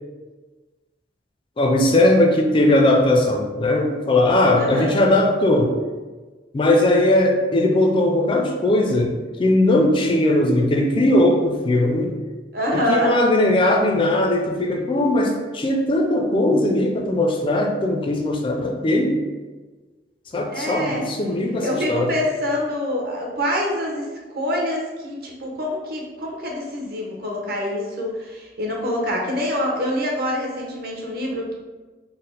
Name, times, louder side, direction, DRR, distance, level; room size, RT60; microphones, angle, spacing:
voice 1, 1.6-5.8 6.5-12.1 12.7-19.2 20.3-22.1, left 1 dB, 30° left, 2 dB, 0.4 m, -19 dB
voice 2, 4.6-5.0 12.5-13.1 20.5-21.0 21.6-31.5, left 1 dB, 60° right, -1 dB, 0.8 m, -25 dB
4.1 x 2.0 x 3.9 m, 1.3 s
head